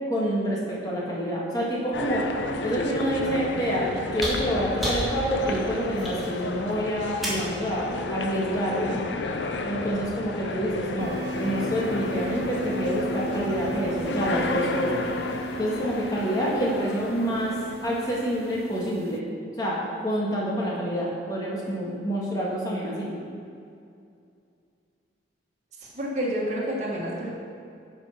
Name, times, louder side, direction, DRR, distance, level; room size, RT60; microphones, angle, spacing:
voice 1, 0.1-2.3 2.6-9.0 9.6-15.0 15.6-17.6 17.8-19.3 19.6-23.2, equal, 20° left, -5 dB, 1.9 m, -27 dB
sound 1, 1.9-18.5, left 3 dB, 75° left, 0.6 m, -32 dB
sound 2, 4.2-7.6 9.0-9.1, equal, ahead, 2.2 m, -32 dB
sound 3, 11.0-19.2, right 2 dB, 55° right, 0.4 m, -36 dB
voice 2, 25.8-27.3, equal, 40° right, -4 dB, 1.8 m, -29 dB
9.7 x 5.5 x 5.9 m, 2.4 s
head